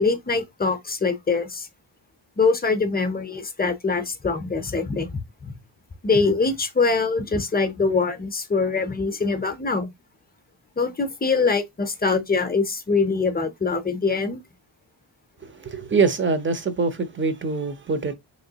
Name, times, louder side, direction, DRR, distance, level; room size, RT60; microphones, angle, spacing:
voice 1, 0.0-1.7 2.4-5.6 6.0-9.9 10.8-14.4, left 4 dB, 20° left, 0.6 m, -23 dB
voice 2, 15.4-18.1, right 4 dB, 25° right, 0.6 m, -24 dB
3.1 x 3.1 x 2.8 m
cardioid pair, 90°, 47 cm